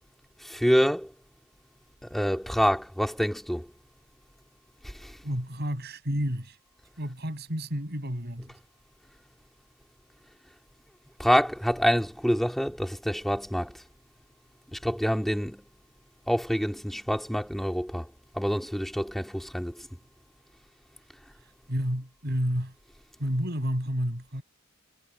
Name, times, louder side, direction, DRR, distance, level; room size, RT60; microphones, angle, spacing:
voice 1, 0.4-1.1 2.0-3.7 4.8-5.2 11.2-13.8 14.7-15.6 16.3-18.1 18.3-19.9, equal, ahead, 2.7 m, -27 dB
voice 2, 5.2-6.6 7.0-8.6 21.7-22.7 23.2-24.4, equal, 50° right, 6.3 m, -30 dB
head